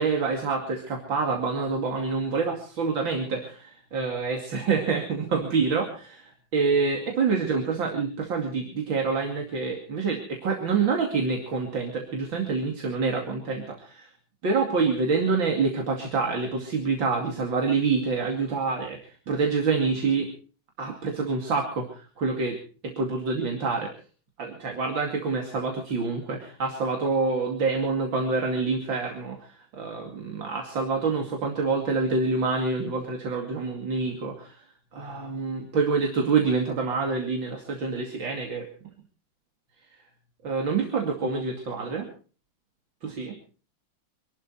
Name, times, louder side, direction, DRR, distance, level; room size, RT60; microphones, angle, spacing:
voice 1, 0.0-14.1 14.4-20.3 20.8-22.6 22.8-23.9 24.4-34.6 34.9-38.7 40.4-42.1 43.0-43.3, right 4 dB, 70° right, 1 dB, 3.2 m, -27 dB
26.0 x 12.0 x 4.6 m, 0.40 s
omnidirectional pair, 2.2 m